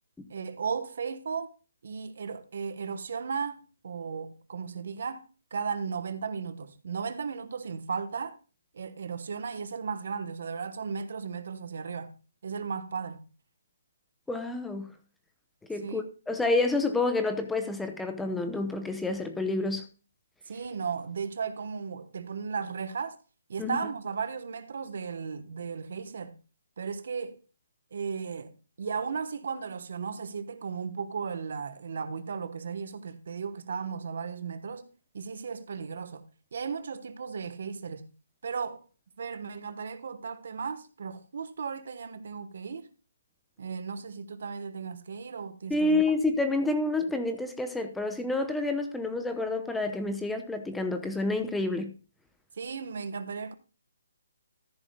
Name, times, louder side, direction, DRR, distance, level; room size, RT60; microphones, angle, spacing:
voice 1, 0.3-1.5 1.8-5.3 5.5-8.4 8.7-12.2 12.4-13.2 15.8-16.0 20.5-23.2 23.5-26.3 26.8-27.4 27.9-34.9 35.1-36.2 36.5-38.1 38.4-38.8 39.2-42.9 43.6-46.0 52.6-53.5, right 5 dB, 60° right, 1.2 m, -35 dB
voice 2, 14.3-14.9 15.7-19.8 23.6-23.8 45.7-51.9, left 2 dB, 5° left, 0.8 m, -29 dB
14.0 x 10.5 x 2.3 m
hypercardioid pair, 160°, 0 cm